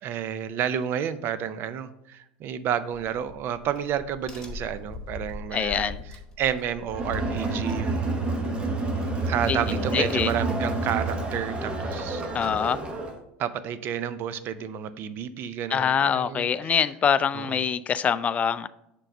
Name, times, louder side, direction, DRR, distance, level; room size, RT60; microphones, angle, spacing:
voice 1, 0.0-5.9 6.4-8.2 9.3-12.2 13.4-16.8 17.3-17.6, right 9 dB, 45° right, 13 dB, 0.5 m, -30 dB
Crack, 2.9-8.4, left 4 dB, 10° left, 2.1 m, -41 dB
voice 2, 5.5-6.0 9.5-10.3 12.3-12.8 15.7-18.7, left 7 dB, 30° left, 15 dB, 0.3 m, -25 dB
Crowd, 6.9-13.2, right 2 dB, 20° right, 1.1 m, -29 dB
6.4 x 3.8 x 5.3 m, 0.86 s
hypercardioid pair, 90°, 5 cm